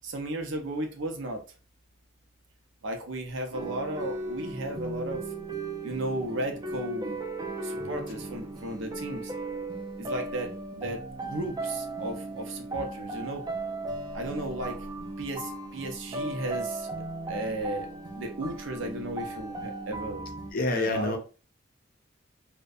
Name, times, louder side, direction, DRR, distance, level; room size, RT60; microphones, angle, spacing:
voice 1, 0.0-1.4 2.8-5.3 5.8-7.2 7.6-9.3 10.0-13.4 14.1-14.8 15.2-16.9 17.3-17.9 18.2-20.3 20.6-21.2, right 1 dB, 75° right, 0.6 m, -34 dB
sound 1, 3.5-20.5, right 2 dB, 20° right, 0.4 m, -36 dB
voice 2, 20.5-21.2, left 2 dB, 45° left, 0.5 m, -27 dB
2.6 x 2.1 x 2.3 m
head